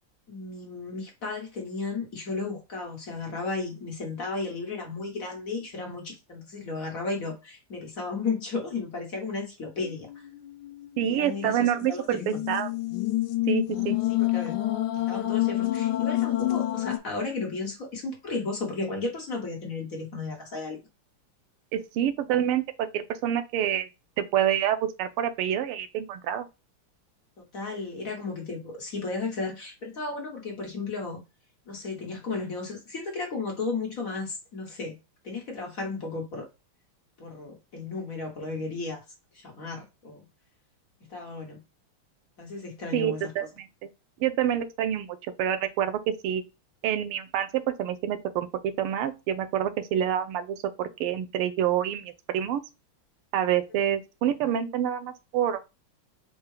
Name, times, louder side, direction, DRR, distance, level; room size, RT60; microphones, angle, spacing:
voice 1, 0.3-10.3 11.0-12.4 14.2-14.6 14.9-20.8 27.5-31.2 31.7-34.9 35.2-36.5 37.2-39.0 39.4-40.3 41.1-41.6 42.4-43.3, left 3 dB, 45° left, 1.5 m, -34 dB
sound 1, 9.8-17.0, left 16 dB, 80° left, 0.9 m, -28 dB
voice 2, 11.0-12.7 13.5-14.0 21.7-23.9 24.2-26.5 42.9-43.9 44.2-45.1 45.4-46.4 46.8-52.6 53.3-55.6, right 10 dB, 85° right, 1.5 m, -27 dB
4.5 x 2.2 x 4.8 m
omnidirectional pair, 2.4 m